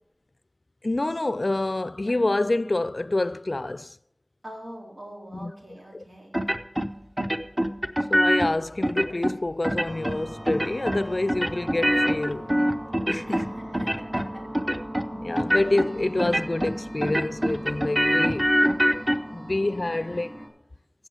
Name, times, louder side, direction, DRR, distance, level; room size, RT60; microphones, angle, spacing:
voice 1, 0.8-4.0 5.3-5.5 5.9-6.0 8.1-12.5 13.1-13.5 15.1-18.8 19.3-20.3, left 2 dB, 60° left, 0.3 m, -27 dB
voice 2, 4.4-6.4 13.3-14.2, equal, 85° right, 4.2 m, -42 dB
sound 1, 6.3-6.9 7.2-8.5 8.8-9.3 9.6-10.2 10.5-11.0 11.3-13.5 13.7-14.3 14.5-15.1 15.4-15.9 16.2-16.7 17.0-19.2, equal, 20° right, 0.8 m, -24 dB
sound 2, 9.8-20.5, equal, 45° right, 3.4 m, -39 dB
15.5 x 6.7 x 4.9 m
wide cardioid pair, 45°, 0 cm